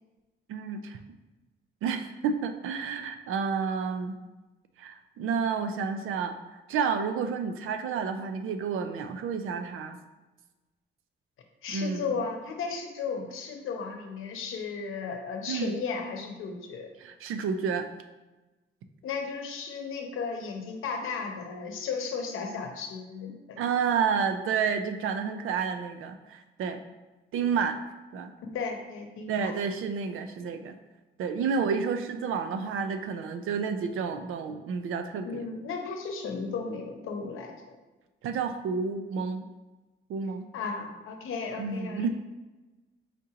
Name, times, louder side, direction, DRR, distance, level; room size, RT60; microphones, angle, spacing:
voice 1, 0.5-1.0 1.8-4.2 4.8-10.0 11.7-12.1 15.5-15.8 17.0-17.9 23.6-26.8 27.3-27.8 28.1-28.3 29.3-30.7 31.2-35.5 38.2-39.5 40.1-40.5 41.6-42.1, right 6 dB, 85° right, 7 dB, 0.5 m, -30 dB
voice 2, 11.6-16.9 19.0-23.7 28.4-29.5 35.2-37.8 40.5-42.1, left 5 dB, 85° left, 3 dB, 0.8 m, -35 dB
5.1 x 3.7 x 2.8 m, 1.1 s
cardioid pair, 110°, 21 cm